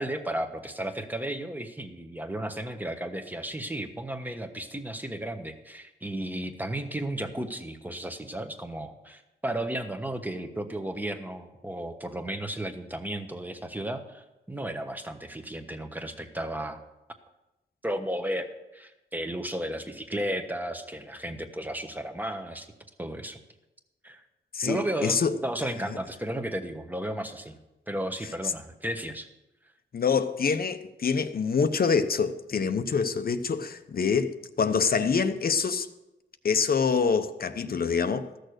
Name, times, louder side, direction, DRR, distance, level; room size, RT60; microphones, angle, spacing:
voice 1, 0.0-16.8 17.8-22.7 23.0-23.4 24.0-24.2 24.6-27.6 27.9-29.3, right 1 dB, 10° right, 1.2 m, -34 dB
voice 2, 24.5-25.4 29.9-35.9 36.4-38.3, left 5 dB, 50° left, 0.8 m, -26 dB
14.0 x 6.6 x 6.5 m
wide cardioid pair, 95°, 19 cm